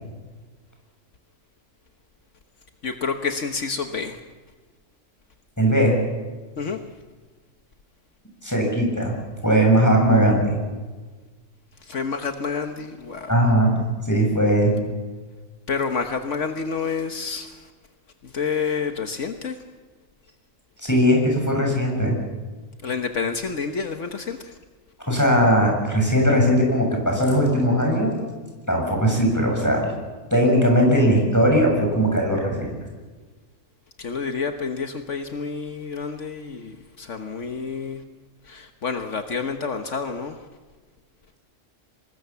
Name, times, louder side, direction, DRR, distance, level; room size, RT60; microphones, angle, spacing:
voice 1, 2.8-4.2 6.6-6.8 11.8-13.3 15.7-17.7 18.2-19.6 22.8-24.6 34.0-38.0 38.4-40.4, left 5 dB, 70° left, 6 dB, 1.6 m, -29 dB
voice 2, 5.6-6.0 8.4-9.1 9.4-10.6 13.3-13.8 14.0-14.7 20.8-22.2 25.1-28.2 28.7-29.9 30.3-32.7, equal, 15° left, 0 dB, 6.9 m, -19 dB
25.5 x 20.5 x 7.1 m, 1.4 s
omnidirectional pair, 1.3 m